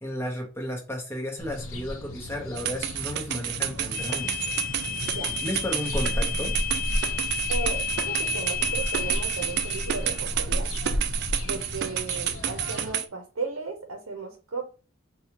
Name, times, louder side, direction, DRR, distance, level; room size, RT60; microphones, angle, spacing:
voice 1, 0.0-4.4 5.4-6.5, left 1 dB, 10° left, 0 dB, 0.9 m, -33 dB
sound 1, 1.4-12.9, equal, 85° left, 0.7 m, -33 dB
sound 2, 2.6-13.0, right 10 dB, 50° right, 0.3 m, -30 dB
sound 3, 3.9-10.2, left 9 dB, 45° left, 0.8 m, -33 dB
voice 2, 7.5-10.7 11.4-14.7, right 4 dB, 80° right, 3 dB, 0.7 m, -35 dB
4.1 x 2.3 x 2.9 m, 0.34 s
head